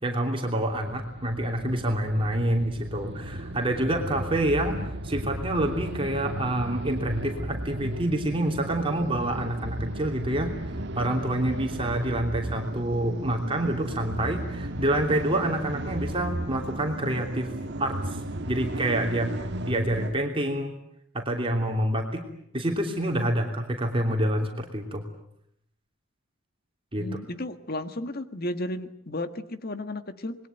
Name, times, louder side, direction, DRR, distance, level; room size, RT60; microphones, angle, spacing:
voice 1, 0.0-10.5 10.9-17.5 17.8-18.2 18.5-19.3 19.6-20.7 21.1-22.2 22.5-25.0 26.9-27.1, right 1 dB, 25° right, 2 dB, 3.0 m, -27 dB
sound 1, 0.7-20.1, right 1 dB, 55° right, 1.7 m, -35 dB
voice 2, 27.0-30.4, left 1 dB, 45° left, 10 dB, 1.6 m, -33 dB
27.5 x 21.0 x 9.2 m, 0.73 s
head